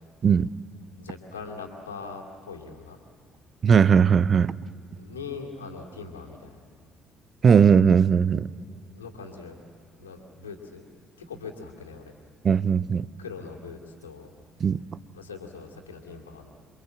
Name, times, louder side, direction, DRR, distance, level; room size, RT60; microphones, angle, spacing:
voice 1, 1.0-3.0 5.0-6.6 9.0-9.6 10.0-10.9 11.2-12.1 13.2-14.3 14.6-14.7 15.1-16.5, left 5 dB, 90° left, 1 dB, 2.5 m, -41 dB
voice 2, 3.6-4.5 7.4-8.5 12.4-13.1 14.6-14.8, right 6 dB, 45° right, 19 dB, 0.6 m, -18 dB
28.0 x 23.5 x 7.6 m, 2.3 s
hypercardioid pair, 50°, 0 cm